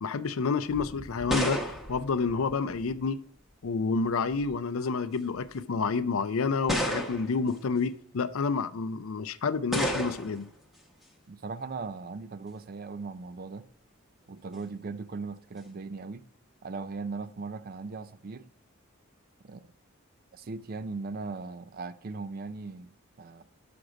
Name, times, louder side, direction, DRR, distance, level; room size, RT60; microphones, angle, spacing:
voice 1, 0.0-3.2 3.6-10.4, left 4 dB, 70° left, 0.5 m, -29 dB
sound 1, 0.7-3.0 4.1-4.5 5.4-5.5 6.7-7.5 9.7-10.5, equal, ahead, 0.9 m, -32 dB
voice 2, 11.3-13.7 14.3-16.3 16.6-18.5 19.4-19.6 20.3-23.4, right 4 dB, 40° right, 0.4 m, -38 dB
6.4 x 6.0 x 5.0 m
head